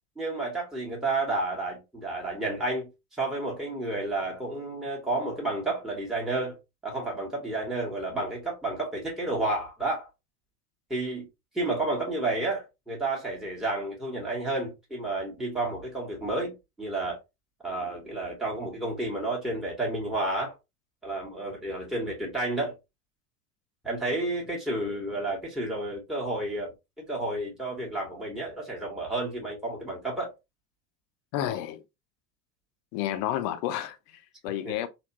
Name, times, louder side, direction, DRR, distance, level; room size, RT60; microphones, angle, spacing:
voice 1, 0.2-2.9 3.2-6.6 6.8-10.1 10.9-11.3 11.5-17.2 17.6-20.5 21.0-22.7 23.8-30.3 34.6-34.8, right 2 dB, ahead, 1.4 m, -31 dB
voice 2, 31.3-31.8 32.9-34.9, left 12 dB, 45° left, 0.7 m, -31 dB
3.4 x 2.4 x 2.8 m
figure-of-eight pair, 80°, 46 cm